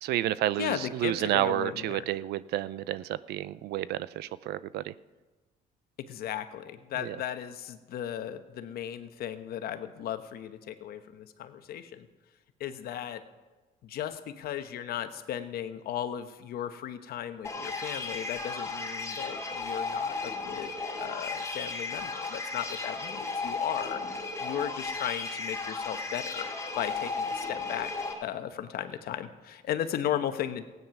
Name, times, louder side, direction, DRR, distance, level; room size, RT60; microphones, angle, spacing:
voice 1, 0.0-4.9 7.0-7.2, right 14 dB, 75° right, 18 dB, 0.5 m, -30 dB
voice 2, 0.6-2.0 6.0-12.1 12.6-13.2 13.8-20.7 21.0-26.5 26.8-27.9 28.2-30.6, left 10 dB, 65° left, 10 dB, 1.1 m, -36 dB
sound 1, 17.4-28.1, left 3 dB, 15° left, 2.6 m, -35 dB
16.0 x 9.4 x 5.9 m, 1.2 s
cardioid pair, 110°, 17 cm